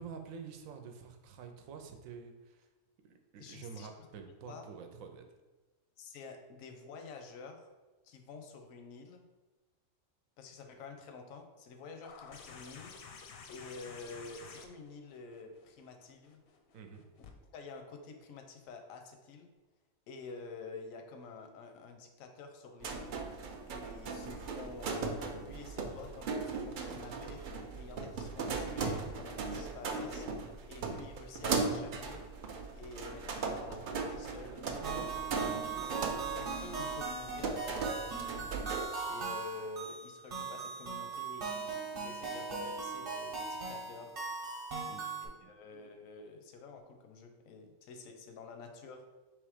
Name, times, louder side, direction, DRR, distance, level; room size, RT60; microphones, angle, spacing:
voice 1, 0.0-2.7 3.0-5.2 16.7-17.0 35.5-35.9 44.9-45.5, right 6 dB, 90° right, 5 dB, 1.0 m, -48 dB
voice 2, 3.4-3.9 4.5-4.7 6.0-7.7 8.0-9.2 10.4-13.0 13.5-16.4 17.5-19.5 20.1-23.1 23.6-27.4 27.7-30.2 30.7-32.2 32.7-34.7 34.9-35.9 36.4-38.5 39.0-44.2 45.2-49.0, left 4 dB, 85° left, 5 dB, 1.0 m, -49 dB
sound 1, 12.0-17.3 18.7-18.8, left 5 dB, 65° left, 0.6 m, -52 dB
sound 2, 22.8-38.9, right 4 dB, 65° right, 0.5 m, -38 dB
sound 3, 34.8-45.3, right 5 dB, 45° right, 0.9 m, -39 dB
3.5 x 3.0 x 4.8 m, 1.2 s
omnidirectional pair, 1.4 m